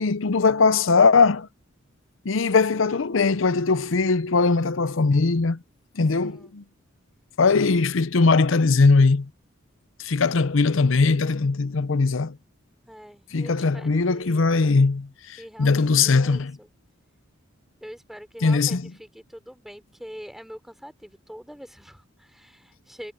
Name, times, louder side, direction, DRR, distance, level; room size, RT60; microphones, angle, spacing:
voice 1, 0.0-1.5 2.2-5.6 6.0-6.6 7.4-9.3 10.0-12.4 13.3-16.6 18.4-18.8, left 4 dB, 75° left, 0.7 m, -20 dB
voice 2, 6.2-6.5 12.9-14.6 15.4-16.7 17.8-23.1, equal, ahead, 3.6 m, -44 dB
head